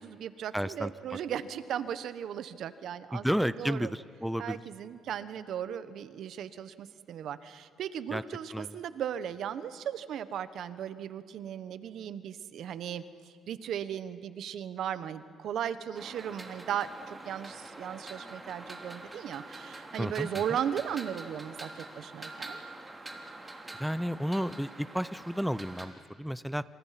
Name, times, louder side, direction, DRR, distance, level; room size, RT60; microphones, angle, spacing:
voice 1, 0.0-3.9 4.4-13.0 13.5-22.6, right 9 dB, 75° right, 13 dB, 1.1 m, -37 dB
voice 2, 0.5-1.2 3.1-4.6 8.1-8.2 8.5-8.7 20.0-20.3 23.8-26.6, equal, ahead, 15 dB, 0.6 m, -32 dB
sound 1, 15.9-25.9, right 2 dB, 20° right, 3.3 m, -45 dB
27.5 x 27.5 x 5.9 m, 2.1 s
cardioid pair, 90°, 0 cm